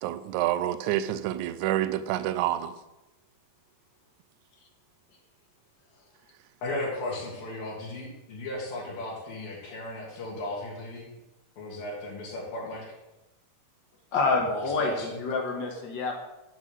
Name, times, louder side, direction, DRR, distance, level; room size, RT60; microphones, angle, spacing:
voice 1, 0.0-2.8, right 13 dB, 80° right, 12 dB, 1.8 m, -28 dB
voice 2, 6.6-11.1 11.6-12.8 14.5-15.2, left 2 dB, 85° left, -7 dB, 4.1 m, -35 dB
voice 3, 14.1-16.1, left 3 dB, 40° left, 1 dB, 2.0 m, -27 dB
11.0 x 5.5 x 8.0 m, 1.0 s
omnidirectional pair, 4.0 m